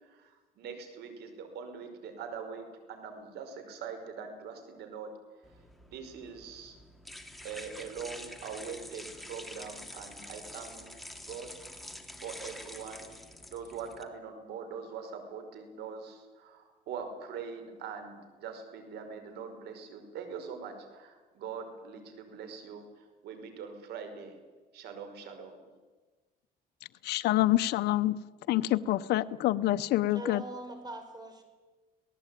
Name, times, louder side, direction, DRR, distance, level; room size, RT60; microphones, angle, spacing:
voice 1, 0.0-5.1 5.9-6.8 7.4-10.9 11.2-13.1 13.5-24.4 24.7-25.7, right 6 dB, 75° right, 7 dB, 5.5 m, -43 dB
sound 1, 5.4-14.0, left 1 dB, ahead, 2.6 m, -47 dB
voice 2, 27.0-28.1 28.5-30.4, left 15 dB, 75° left, 10 dB, 0.8 m, -27 dB
voice 3, 30.1-31.4, right 2 dB, 25° right, 7 dB, 5.2 m, -42 dB
27.0 x 18.5 x 9.2 m, 1.3 s
cardioid pair, 110°, 17 cm